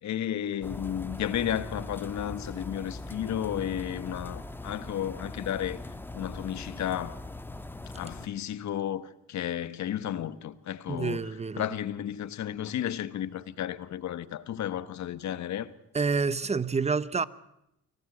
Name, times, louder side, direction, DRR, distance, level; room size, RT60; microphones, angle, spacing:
voice 1, 0.0-5.8 6.1-7.2 7.9-11.2 11.6-15.7, left 10 dB, 65° left, 1.3 m, -33 dB
sound 1, 0.6-8.3, left 2 dB, 5° left, 1.4 m, -41 dB
voice 2, 10.9-11.7 15.9-17.2, right 4 dB, 20° right, 0.9 m, -28 dB
24.0 x 16.5 x 8.0 m
cardioid pair, 90°, 30 cm